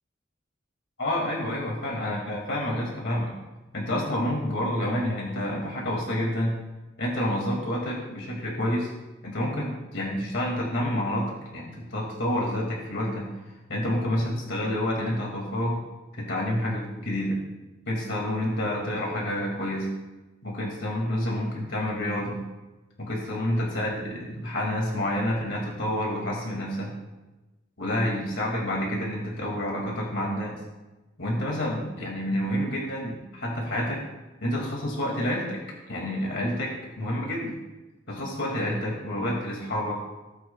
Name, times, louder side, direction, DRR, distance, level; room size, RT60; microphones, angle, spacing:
voice 1, 1.0-3.3 3.7-6.6 7.0-8.9 9.2-13.3 13.7-15.8 16.2-17.4 17.9-19.9 20.4-22.4 23.0-26.9 27.8-30.6 31.2-34.0 34.4-35.6 35.9-37.6 38.1-39.9, left 1 dB, 70° left, -2 dB, 2.5 m, -28 dB
17.5 x 9.0 x 2.4 m, 1.1 s
head